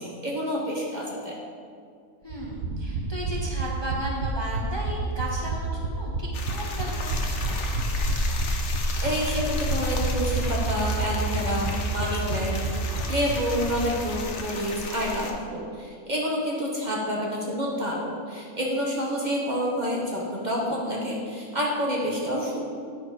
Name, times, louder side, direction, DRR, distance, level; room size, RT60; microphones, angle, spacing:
voice 1, 0.0-1.4 9.0-22.7, equal, 35° right, -3 dB, 1.2 m, -28 dB
voice 2, 2.2-7.6, right 1 dB, 20° left, -4 dB, 1.0 m, -35 dB
sound 1, 2.3-14.0 14.3-14.4 14.6-14.7, right 3 dB, 50° right, 1.0 m, -29 dB
sound 2, 6.3-15.3, left 2 dB, 60° left, 1.2 m, -32 dB
9.2 x 6.5 x 4.9 m, 2.3 s
omnidirectional pair, 1.5 m